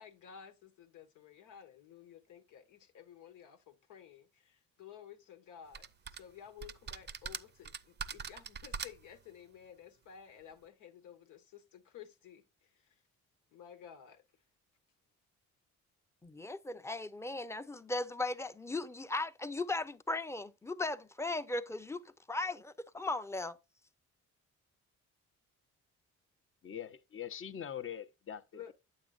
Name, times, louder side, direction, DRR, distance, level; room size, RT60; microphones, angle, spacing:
voice 1, 0.0-13.0 13.5-14.2 28.5-28.7, left 9 dB, 85° left, 1.3 m, -54 dB
sound 1, 5.7-6.2 6.6-9.2, right 6 dB, 35° right, 0.6 m, -42 dB
voice 2, 16.2-23.6, left 2 dB, 10° left, 0.6 m, -37 dB
voice 3, 26.6-28.7, left 9 dB, 45° left, 0.8 m, -43 dB
9.0 x 7.4 x 2.4 m
cardioid pair, 90°, 30 cm